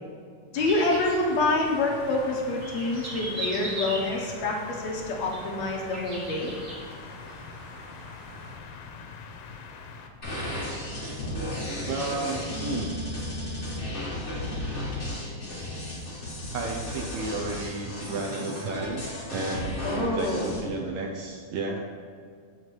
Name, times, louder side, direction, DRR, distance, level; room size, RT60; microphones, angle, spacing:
sound 1, 0.5-10.1, left 5 dB, 90° left, 2.3 m, -44 dB
voice 1, 0.5-6.5 19.8-20.5, left 2 dB, 70° left, -1 dB, 2.0 m, -27 dB
sound 2, 0.7-8.6, right 1 dB, 45° right, 1.0 m, -40 dB
sound 3, 10.2-20.6, left 1 dB, 25° left, 1.4 m, -34 dB
voice 2, 11.9-12.9 16.5-21.8, right 3 dB, 75° right, 2 dB, 1.7 m, -32 dB
8.1 x 6.4 x 4.5 m, 2.2 s
omnidirectional pair, 3.6 m